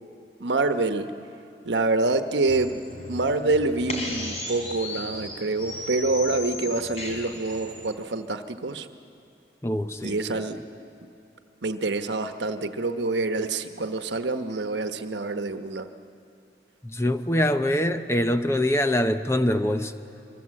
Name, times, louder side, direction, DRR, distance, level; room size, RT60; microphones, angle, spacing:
voice 1, 0.4-1.1 1.6-2.8 3.1-8.9 10.0-10.6 11.6-15.9, right 3 dB, 85° right, 8 dB, 1.1 m, -26 dB
sound 1, 2.5-7.9, left 1 dB, 40° left, 3.4 m, -36 dB
voice 2, 9.6-10.4 16.8-19.9, left 1 dB, 15° left, 9 dB, 0.7 m, -24 dB
24.5 x 24.0 x 7.7 m, 2.6 s
head